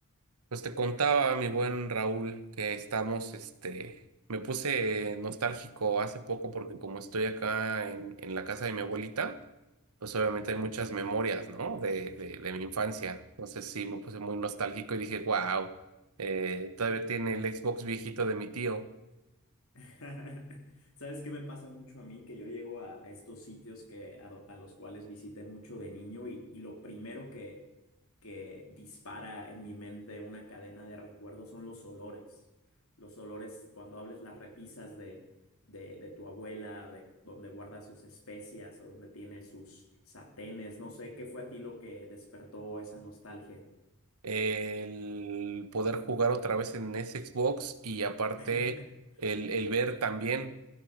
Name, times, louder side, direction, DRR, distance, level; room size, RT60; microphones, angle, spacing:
voice 1, 0.5-4.0 4.3-9.4 10.0-15.7 16.2-18.9 44.2-48.7 49.2-50.5, right 4 dB, 85° right, 1.2 m, -32 dB
voice 2, 19.7-27.6 28.2-32.4 33.0-35.2 35.7-43.6 48.4-48.9, left 1 dB, 65° left, 3.2 m, -45 dB
16.0 x 16.0 x 5.2 m
head